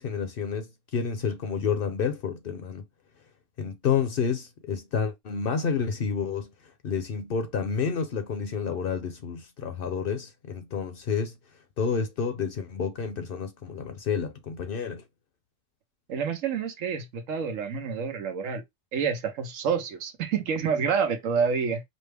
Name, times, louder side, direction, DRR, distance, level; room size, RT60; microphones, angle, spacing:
voice 1, 0.0-2.8 3.6-6.5 6.8-11.3 11.8-15.0, left 6 dB, 55° left, 0.7 m, -29 dB
voice 2, 16.1-18.6 18.9-21.8, right 6 dB, 90° right, 1.2 m, -28 dB
5.2 x 2.1 x 3.3 m
omnidirectional pair, 1.3 m